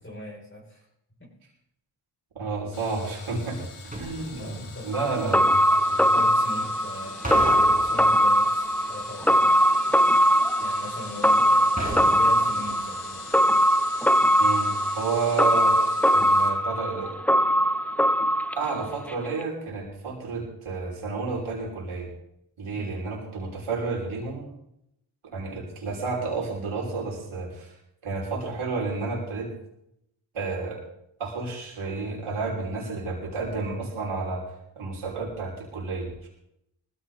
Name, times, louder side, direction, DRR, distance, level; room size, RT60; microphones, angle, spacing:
voice 1, 0.0-0.8 1.2-1.3 4.4-5.6 6.1-9.5 10.6-13.2 22.7-23.0, left 1 dB, 25° left, -5 dB, 6.8 m, -39 dB
voice 2, 2.4-3.6 3.9-4.6 4.8-5.4 5.9-6.1 14.4-15.8 16.1-17.1 18.6-22.1 22.6-24.5 25.3-27.7 28.0-29.5 30.3-30.8 31.2-34.4 34.8-36.3, right 4 dB, 75° right, -3 dB, 5.9 m, -31 dB
sound 1, 2.7-16.5, left 5 dB, 85° left, 2.6 m, -44 dB
sound 2, 3.9-4.7 7.2-8.5 11.8-12.8 13.1-13.2, right 2 dB, 15° right, 6.4 m, -34 dB
sound 3, 4.9-19.1 19.4-19.5, equal, 5° left, 0.9 m, -21 dB
19.5 x 15.0 x 4.2 m, 0.79 s
supercardioid pair, 40°, 50 cm